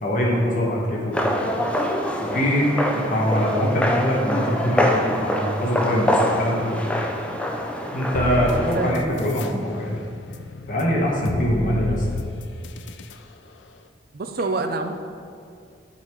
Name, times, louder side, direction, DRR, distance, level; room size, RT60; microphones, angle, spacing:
voice 1, 0.0-1.2 2.2-2.7 2.9-6.8 7.9-10.0 10.7-12.1, equal, 45° left, -3 dB, 1.1 m, -23 dB
sound 1, 1.1-9.0, left 1 dB, 5° left, 0.4 m, -25 dB
sound 2, 8.1-9.5 9.9-13.2, left 3 dB, 75° left, 0.4 m, -33 dB
voice 2, 8.5-9.4 14.1-14.9, right 3 dB, 55° right, 7 dB, 0.5 m, -28 dB
8.9 x 4.1 x 4.5 m, 2.4 s
head